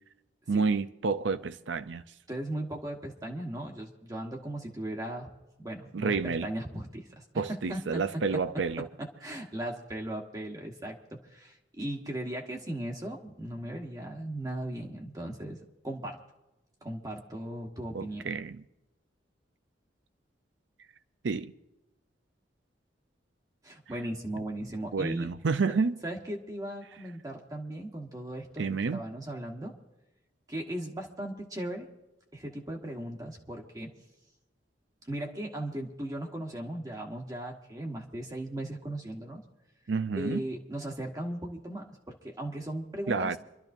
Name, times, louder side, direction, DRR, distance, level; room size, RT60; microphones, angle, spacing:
voice 1, 0.5-2.0 5.9-6.5 7.3-8.9 17.9-18.6 21.2-21.5 24.9-25.9 28.6-29.0 39.9-40.4 43.1-43.4, right 4 dB, 90° right, 0.5 m, -29 dB
voice 2, 2.3-5.3 5.6-7.2 7.5-8.0 9.0-11.0 11.3-15.6 15.8-16.2 16.8-18.2 23.6-25.3 26.0-29.8 30.5-31.9 32.3-33.9 35.0-39.4 40.1-43.3, right 1 dB, 20° right, 1.2 m, -37 dB
28.0 x 12.0 x 2.7 m
head